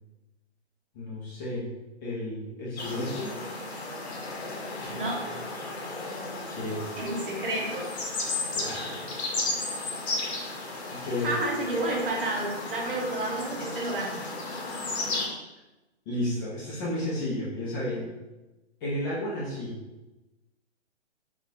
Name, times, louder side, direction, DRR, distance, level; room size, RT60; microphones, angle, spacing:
voice 1, 0.9-1.7 2.0-3.3 6.5-7.0 8.5-9.0 10.9-11.3 16.1-18.1 18.8-19.7, left 1 dB, 20° left, -7 dB, 0.6 m, -32 dB
sound 1, 2.8-15.3, left 3 dB, 65° left, 0.9 m, -34 dB
voice 2, 4.9-5.4 7.0-7.9 11.2-14.2, right 2 dB, 50° right, -2 dB, 0.9 m, -30 dB
3.9 x 2.4 x 2.6 m, 1.0 s
hypercardioid pair, 140°, 35 cm